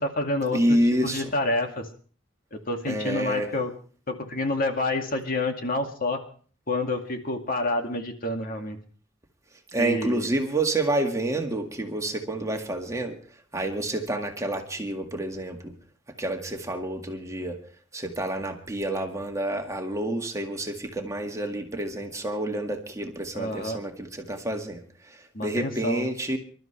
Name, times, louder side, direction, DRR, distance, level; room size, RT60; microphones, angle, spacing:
voice 1, 0.0-0.8 1.0-1.9 2.5-3.7 4.1-6.2 6.7-8.8 9.8-10.3 23.3-23.8 25.3-26.1, left 2 dB, 50° left, 4 dB, 2.2 m, -28 dB
voice 2, 0.5-1.3 2.9-3.5 9.7-13.2 13.5-15.7 16.2-17.6 17.9-24.8 25.1-26.4, right 1 dB, 15° right, 3 dB, 2.0 m, -28 dB
26.5 x 13.0 x 3.3 m, 0.42 s
head